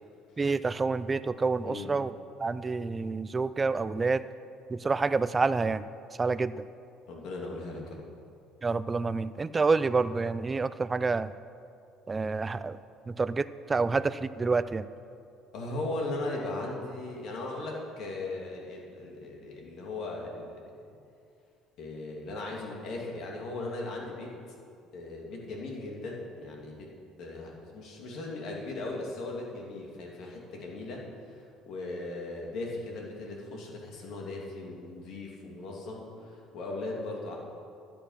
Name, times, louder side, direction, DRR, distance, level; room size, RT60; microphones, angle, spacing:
voice 1, 0.4-2.1 2.4-4.2 4.7-5.8 6.2-6.5 8.6-11.3 12.1-12.8 13.1-14.8, right 4 dB, 25° right, 15 dB, 0.4 m, -28 dB
voice 2, 7.1-8.0 15.5-20.8 21.8-24.3 24.9-26.9 27.2-37.4, left 2 dB, 65° left, -1 dB, 2.8 m, -38 dB
12.5 x 9.0 x 5.9 m, 2.4 s
supercardioid pair, 90°, 0 cm